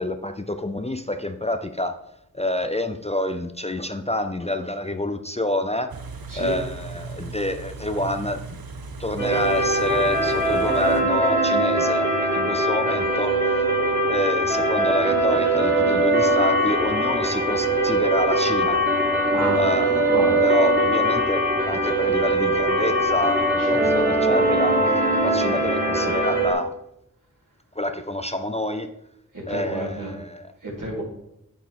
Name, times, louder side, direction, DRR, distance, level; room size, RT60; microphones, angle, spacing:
voice 1, 0.0-2.0 2.3-5.9 6.3-8.4 9.0-13.4 14.1-18.8 19.5-20.1 20.4-24.8 25.2-26.7 27.8-28.9 29.5-30.5, left 1 dB, 20° left, 8 dB, 0.5 m, -28 dB
Car / Idling, 5.9-11.0, right 4 dB, 85° right, 0.8 m, -37 dB
sound 1, 9.2-26.5, right 1 dB, 25° right, 3.7 m, -21 dB
voice 2, 19.3-19.6 20.1-20.4 23.6-23.9 29.5-30.1 30.6-31.0, right 1 dB, 65° right, -3 dB, 3.6 m, -30 dB
9.4 x 7.3 x 3.8 m, 0.82 s
wide cardioid pair, 45°, 35 cm